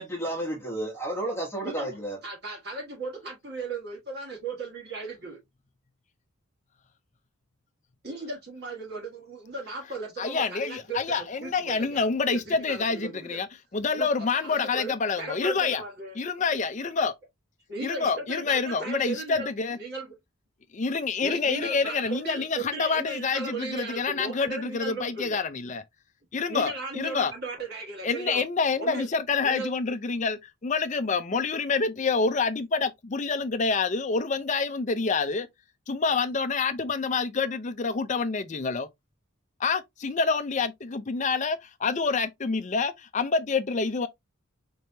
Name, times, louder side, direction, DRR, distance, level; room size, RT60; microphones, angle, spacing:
voice 1, 0.0-2.2, right 1 dB, 10° left, 1.1 m, -32 dB
voice 2, 2.2-5.4 8.0-13.4 13.9-16.2 17.7-20.1 21.2-25.4 26.5-28.4 28.8-29.1 29.4-29.7, right 3 dB, 45° right, 1.7 m, -36 dB
voice 3, 10.2-15.8 16.1-17.1 17.8-19.8 20.7-25.8 26.3-27.3 28.0-35.5 35.9-38.9 39.6-44.1, left 4 dB, 35° left, 0.5 m, -27 dB
4.4 x 3.4 x 2.7 m
head